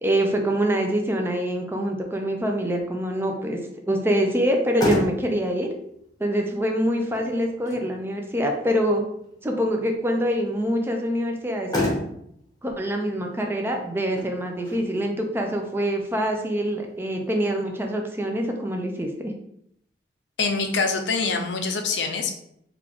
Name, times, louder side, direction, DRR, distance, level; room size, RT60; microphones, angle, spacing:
voice 1, 0.0-3.6 3.9-5.7 6.2-9.0 9.4-11.7 12.6-19.3, equal, 15° right, 3 dB, 0.4 m, -25 dB
Motor vehicle (road), 4.4-17.4, left 1 dB, 20° left, 0.8 m, -34 dB
voice 2, 20.4-22.4, left 4 dB, 85° left, 5 dB, 0.5 m, -25 dB
3.4 x 2.4 x 3.4 m, 0.72 s
head